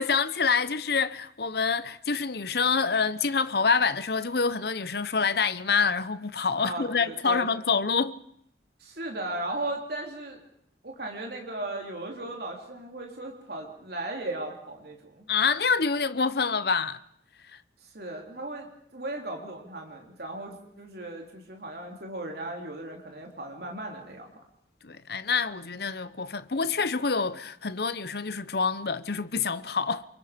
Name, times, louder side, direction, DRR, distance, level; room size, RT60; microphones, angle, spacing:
voice 1, 0.0-8.2 15.3-17.0 17.5-17.6 24.8-30.1, left 5 dB, 60° left, 0.8 m, -26 dB
voice 2, 6.6-7.6 8.8-10.4 10.8-15.3 17.8-24.3, right 2 dB, 55° right, 3.5 m, -36 dB
28.0 x 22.5 x 5.2 m
head